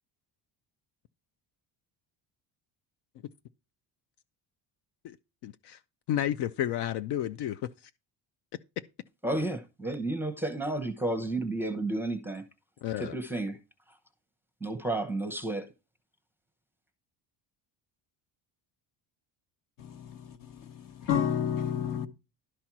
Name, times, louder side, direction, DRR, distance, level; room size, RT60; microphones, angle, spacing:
voice 1, 5.4-5.8 6.1-7.7 12.8-13.2, left 11 dB, 60° left, 0.6 m, -31 dB
voice 2, 9.2-12.4 13.0-13.6 14.6-15.7, right 2 dB, 5° right, 0.8 m, -31 dB
voice 3, 19.8-22.1, left 9 dB, 45° left, 1.2 m, -31 dB
12.0 x 4.3 x 6.0 m
cardioid pair, 175°, 45 cm